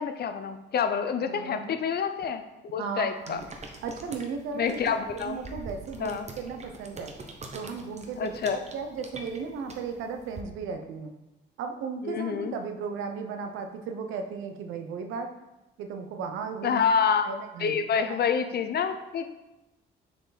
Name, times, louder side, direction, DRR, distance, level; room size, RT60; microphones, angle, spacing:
voice 1, 0.0-3.4 4.5-5.4 6.0-6.3 8.2-8.6 12.0-12.5 16.6-17.3 17.6-19.3, left 6 dB, 55° left, 9 dB, 0.7 m, -27 dB
voice 2, 1.2-1.8 2.8-3.5 3.8-7.1 7.5-8.3 8.7-11.1 11.6-15.3 15.8-16.8 17.2-17.7 18.1-18.2, right 5 dB, 90° right, 6 dB, 0.8 m, -35 dB
sound 1, 3.2-10.4, right 3 dB, 35° right, 1.0 m, -44 dB
6.5 x 4.7 x 4.1 m, 0.98 s
cardioid pair, 90°, 20 cm